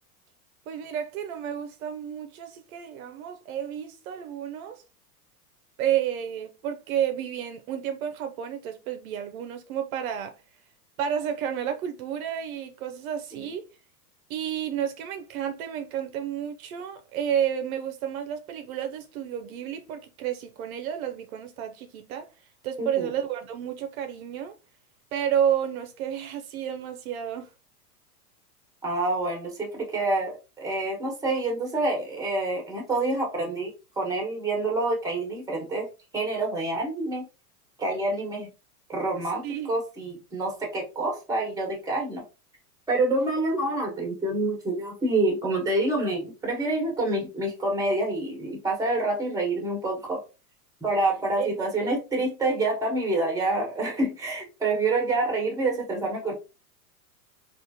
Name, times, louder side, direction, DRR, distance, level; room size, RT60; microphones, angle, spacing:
voice 1, 0.7-4.8 5.8-10.3 11.0-13.6 14.3-22.3 22.6-24.5 25.1-27.5 39.4-39.7 51.4-51.5 51.8-52.0, right 9 dB, 65° right, 0.6 m, -31 dB
voice 2, 22.8-23.1 28.8-35.9 36.1-37.2 37.8-38.5 38.9-42.2 42.9-50.2 50.8-56.3, right 2 dB, 5° right, 1.1 m, -27 dB
3.6 x 2.5 x 2.7 m
hypercardioid pair, 125°, 46 cm